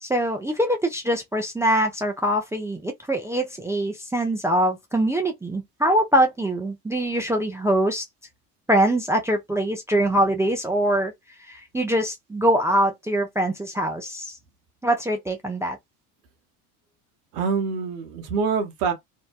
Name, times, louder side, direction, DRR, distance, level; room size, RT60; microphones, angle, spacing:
voice 1, 0.0-8.0 8.7-11.1 11.4-14.4 14.8-15.8, right 1 dB, 5° right, 0.3 m, -23 dB
voice 2, 17.3-18.9, right 5 dB, 70° right, 0.9 m, -25 dB
2.6 x 2.1 x 2.3 m
hypercardioid pair, 60°, 48 cm